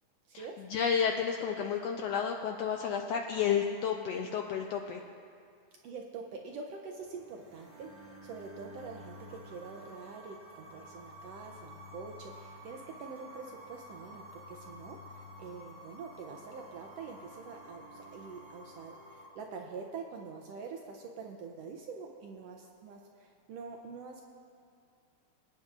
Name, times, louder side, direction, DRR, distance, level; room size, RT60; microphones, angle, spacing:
voice 1, 0.3-5.0, left 7 dB, 85° left, 3 dB, 1.5 m, -31 dB
voice 2, 5.8-24.3, right 5 dB, 75° right, 2 dB, 1.5 m, -45 dB
sound 1, 7.0-19.3, equal, 25° right, 1.7 m, -51 dB
24.0 x 9.3 x 2.5 m, 2.3 s
omnidirectional pair, 3.4 m